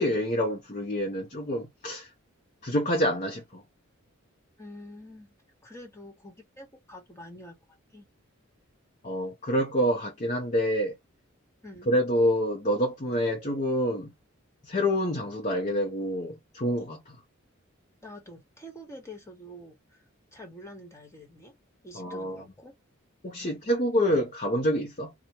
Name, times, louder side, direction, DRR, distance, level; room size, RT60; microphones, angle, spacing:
voice 1, 0.0-2.1 2.6-3.6 9.0-11.0 11.9-14.1 14.6-17.2 21.9-22.4 23.2-25.1, equal, 35° left, 0.8 m, -27 dB
voice 2, 4.6-5.3 5.6-7.6 7.9-8.1 11.6-11.9 18.0-20.0 20.3-21.5 21.8-22.7 23.4-23.5, equal, 15° left, 1.4 m, -46 dB
4.2 x 2.3 x 3.2 m
head